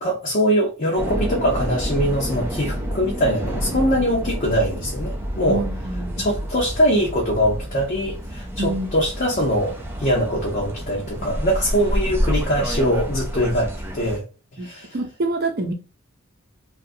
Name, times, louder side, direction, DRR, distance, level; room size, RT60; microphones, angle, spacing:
voice 1, 0.0-5.6 6.2-14.2 14.6-14.9, equal, 40° left, 0.7 m, -22 dB
sound 1, 1.0-14.2, equal, 10° right, 0.5 m, -28 dB
voice 2, 5.5-6.3 8.6-8.9 14.6-14.7 14.9-15.7, right 2 dB, 50° right, 0.7 m, -26 dB
2.7 x 2.4 x 2.6 m
head